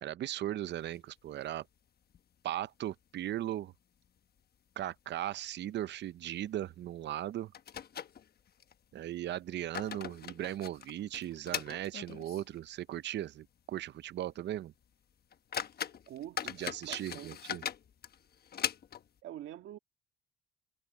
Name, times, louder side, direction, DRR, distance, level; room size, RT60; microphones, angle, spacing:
voice 1, 0.0-1.7 2.4-3.7 4.8-7.5 8.9-14.7 16.6-17.6, right 12 dB, 60° right, 0.5 m, -38 dB
sound 1, 0.8-1.8 2.1-2.2 2.6-2.7 3.3-3.8 4.0-4.2 4.8-5.0 5.3-5.5 6.8-6.9 7.5-8.7 9.4-12.6 12.9-13.0 13.6-13.7 14.1-14.3 14.8-14.9 15.3-19.2, left 8 dB, 50° left, 1.1 m, -41 dB
voice 2, 16.1-17.3 19.2-19.8, right 12 dB, 80° right, 2.0 m, -46 dB
cardioid pair, 90°, 20 cm